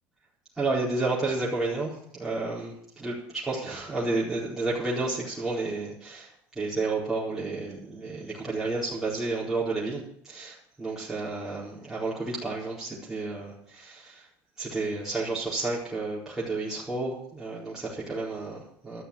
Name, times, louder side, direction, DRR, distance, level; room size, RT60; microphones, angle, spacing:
voice 1, 0.6-14.3 14.6-19.0, right 3 dB, 5° right, -9 dB, 4.6 m, -31 dB
13.0 x 6.8 x 8.7 m, 0.68 s
supercardioid pair, 115°, 7 cm